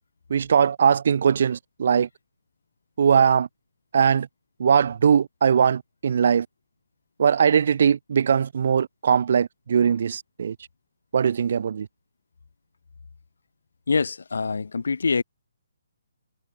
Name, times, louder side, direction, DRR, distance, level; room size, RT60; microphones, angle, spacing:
voice 1, 0.3-2.1 3.0-3.5 3.9-4.3 4.6-6.5 7.2-10.6 11.1-11.9, right 7 dB, 55° right, 1.1 m, -20 dB
voice 2, 13.9-15.2, left 4 dB, 85° left, 0.6 m, -24 dB
hypercardioid pair, 165°, 0 cm